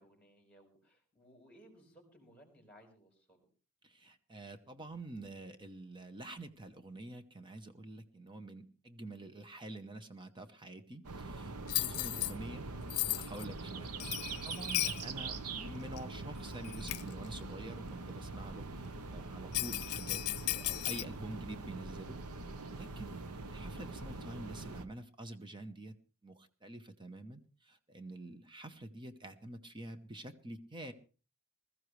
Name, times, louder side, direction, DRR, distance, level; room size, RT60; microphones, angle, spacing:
voice 1, 0.0-3.5 12.1-12.4, equal, 5° left, 2 dB, 4.5 m, -61 dB
voice 2, 3.8-12.7 13.1-22.2 22.7-23.2 23.5-26.0 26.2-30.9, right 2 dB, 20° right, 9 dB, 0.9 m, -47 dB
sound 1, 11.0-24.8, right 3 dB, 75° right, 1.0 m, -43 dB
Bell, 11.7-12.3 12.9-13.5 14.0-15.0 16.0-16.1 16.6-17.1 19.5-21.0, left 19 dB, 85° left, 0.6 m, -35 dB
21.0 x 14.0 x 3.2 m, 0.36 s
head